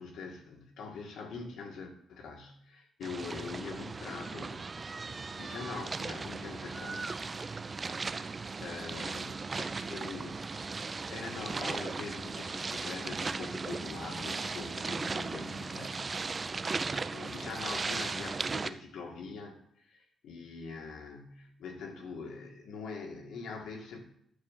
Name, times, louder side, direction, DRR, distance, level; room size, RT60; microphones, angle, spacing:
voice 1, 0.0-4.7 5.4-7.3 8.2-16.1 17.1-24.0, left 4 dB, 80° left, 1 dB, 1.9 m, -43 dB
sound 1, 3.0-18.7, right 4 dB, 25° right, 0.3 m, -37 dB
11.0 x 3.7 x 7.3 m, 0.71 s
cardioid pair, 170°, 0 cm